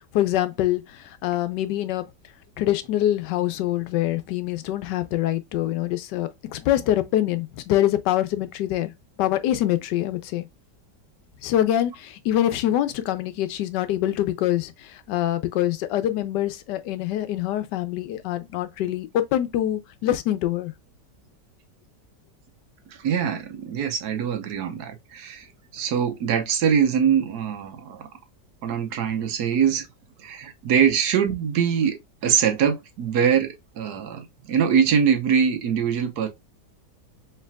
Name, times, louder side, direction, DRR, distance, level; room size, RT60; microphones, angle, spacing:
voice 1, 0.1-2.1 2.6-8.9 9.2-10.5 11.4-20.7, left 13 dB, 80° left, 1.2 m, -25 dB
voice 2, 23.0-25.5 25.7-28.0 28.6-29.9 30.2-32.0 32.2-36.3, right 7 dB, 70° right, 1.2 m, -23 dB
4.4 x 3.3 x 2.2 m
omnidirectional pair, 1.9 m